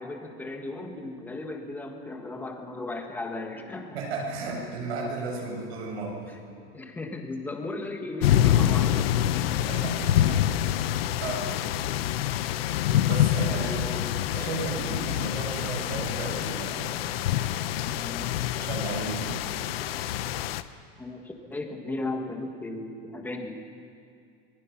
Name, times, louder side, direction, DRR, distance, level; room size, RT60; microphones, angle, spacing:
voice 1, 0.0-4.0 6.7-9.6 13.5-14.2 17.9-18.4 21.0-23.6, left 2 dB, 5° left, 3 dB, 1.5 m, -36 dB
voice 2, 3.9-6.3 9.7-11.5 13.1-13.8 14.3-16.9 17.4-17.7 18.5-19.4, right 3 dB, 80° right, -2 dB, 7.9 m, -34 dB
sound 1, 8.2-20.6, left 11 dB, 65° left, 1.0 m, -26 dB
26.0 x 21.5 x 6.0 m, 2.4 s
supercardioid pair, 175°, 32 cm